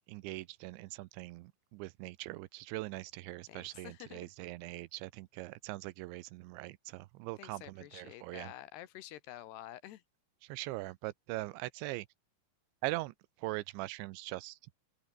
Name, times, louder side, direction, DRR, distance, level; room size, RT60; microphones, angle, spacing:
voice 1, 0.1-8.5 10.4-12.1 12.8-14.6, right 19 dB, 85° right, 3.0 m, -41 dB
voice 2, 3.5-4.3 7.4-10.0, left 13 dB, 70° left, 2.9 m, -49 dB
open air
omnidirectional pair, 5.4 m